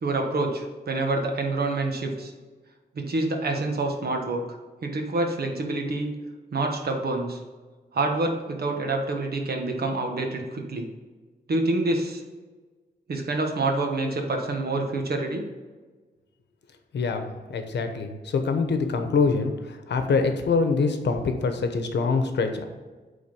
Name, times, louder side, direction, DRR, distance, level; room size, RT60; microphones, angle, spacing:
voice 1, 0.0-2.3 2.9-4.4 4.8-6.1 6.5-7.4 7.9-10.9 11.5-12.2 13.1-15.4, right 2 dB, 65° right, 3 dB, 1.3 m, -27 dB
voice 2, 16.9-22.6, left 4 dB, 85° left, 6 dB, 0.9 m, -25 dB
8.5 x 3.9 x 5.3 m, 1.3 s
wide cardioid pair, 135°, 18 cm